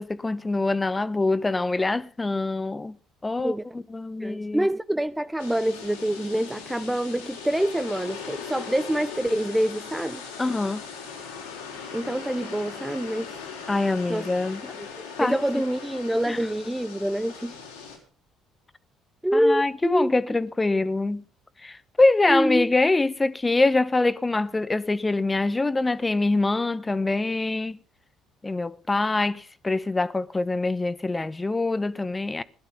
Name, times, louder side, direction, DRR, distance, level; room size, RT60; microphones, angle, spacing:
voice 1, 0.0-2.9 3.2-4.7 10.4-10.8 13.7-14.7 15.2-15.6 16.3-16.4 19.3-21.2 21.6-27.8 28.4-32.4, left 2 dB, 20° left, 1.0 m, -24 dB
voice 2, 4.2-10.2 11.9-13.3 14.1-14.3 14.8-14.9 15.2-17.5 19.2-20.1 22.3-22.7, right 1 dB, 5° right, 0.6 m, -26 dB
sound 1, 5.4-18.0, left 6 dB, 85° left, 4.1 m, -39 dB
17.0 x 11.5 x 5.5 m
hypercardioid pair, 55°, 0 cm